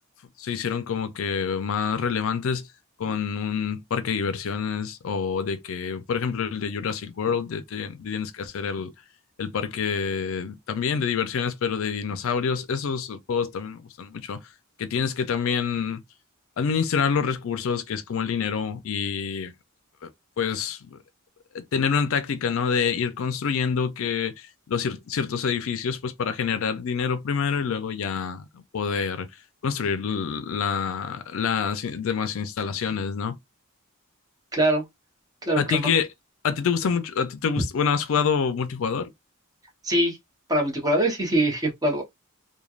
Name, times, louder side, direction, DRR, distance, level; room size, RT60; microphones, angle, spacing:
voice 1, 0.4-2.7 3.0-8.9 9.4-14.4 14.8-16.0 16.6-19.5 20.0-20.1 20.4-21.0 21.5-29.3 29.6-33.4 35.6-36.1 36.4-39.1, left 6 dB, 70° left, 0.4 m, -27 dB
voice 2, 34.5-34.8 35.4-35.8 39.8-40.2 40.5-42.0, right 1 dB, 20° right, 0.9 m, -23 dB
3.2 x 2.2 x 2.3 m
head